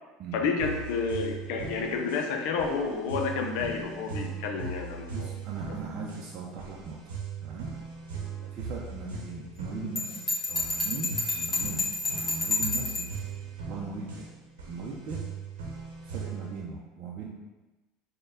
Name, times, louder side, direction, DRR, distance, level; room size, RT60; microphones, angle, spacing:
voice 1, 0.3-5.3, left 4 dB, 70° left, 3 dB, 0.5 m, -30 dB
sound 1, 0.6-16.6, right 4 dB, 85° right, 0.8 m, -39 dB
voice 2, 5.1-7.0 7.4-7.7 8.4-10.1 10.5-11.8 12.2-13.1 13.7-14.3 14.6-15.2 16.0-17.3, right 4 dB, 55° right, -2 dB, 0.5 m, -39 dB
Bell, 10.0-13.1, left 2 dB, 30° left, 1.2 m, -30 dB
4.2 x 2.2 x 3.4 m, 1.1 s
hypercardioid pair, 90°, 0 cm